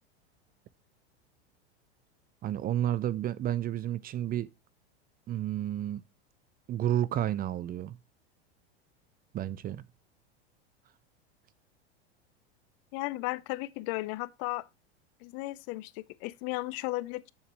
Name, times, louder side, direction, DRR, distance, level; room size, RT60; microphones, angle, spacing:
voice 1, 2.4-4.5 5.3-6.0 6.7-8.0 9.3-9.8, right 12 dB, 25° right, 0.5 m, -31 dB
voice 2, 12.9-14.6 15.2-17.3, left 21 dB, 50° left, 0.6 m, -35 dB
8.0 x 7.3 x 3.0 m
hypercardioid pair, 100°, 33 cm